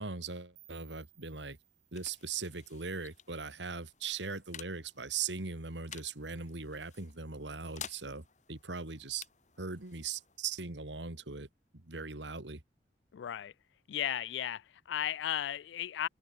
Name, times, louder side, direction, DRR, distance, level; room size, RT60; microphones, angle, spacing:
voice 1, 0.0-1.6 1.9-9.3 9.6-11.5 11.7-12.6, right 5 dB, 80° right, 2.3 m, -40 dB
sound 1, 0.6-3.5, right 18 dB, 65° right, 6.0 m, -64 dB
sound 2, 1.2-12.5, left 8 dB, 40° left, 3.6 m, -54 dB
voice 2, 13.1-13.5 13.9-16.1, left 11 dB, 80° left, 0.3 m, -35 dB
head